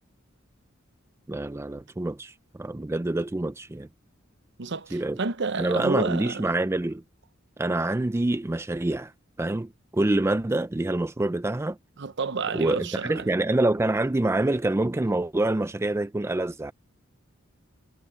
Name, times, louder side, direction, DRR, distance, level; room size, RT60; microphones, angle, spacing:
voice 1, 1.3-3.9 4.9-5.2 5.6-7.0 7.6-9.1 9.4-11.8 12.5-16.7, right 2 dB, 15° right, 0.4 m, -26 dB
voice 2, 4.6-6.5 12.0-13.3, right 4 dB, 60° right, 0.8 m, -30 dB
head